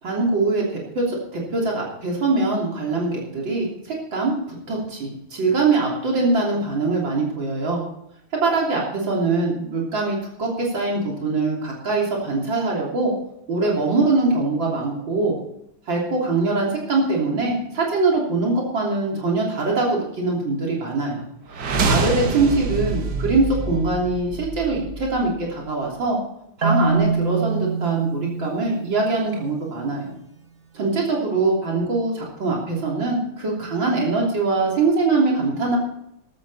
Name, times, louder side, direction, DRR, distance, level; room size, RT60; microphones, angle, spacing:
voice 1, 0.0-7.8 8.3-13.1 13.5-15.3 15.9-26.2 26.6-30.1 30.7-35.8, right 3 dB, 85° right, -3 dB, 3.9 m, -23 dB
sound 1, 21.5-25.5, right 3 dB, 65° right, 1.9 m, -26 dB
Marimba xylophone, 26.6-29.6, right 4 dB, 30° right, 1.5 m, -25 dB
14.0 x 13.0 x 4.1 m, 0.79 s
omnidirectional pair, 2.0 m